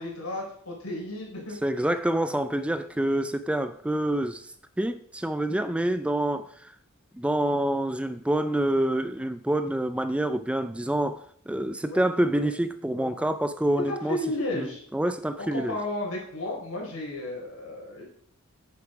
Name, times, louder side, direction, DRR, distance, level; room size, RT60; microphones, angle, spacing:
voice 1, 0.0-1.6 11.8-12.0 12.3-12.5 12.9-13.1 13.9-14.8 15.4-18.0, left 1 dB, 85° left, 4.1 m, -33 dB
voice 2, 1.6-4.5 4.8-6.7 7.2-14.2 14.5-15.8, right 1 dB, 5° right, 0.4 m, -27 dB
9.5 x 6.9 x 5.0 m
head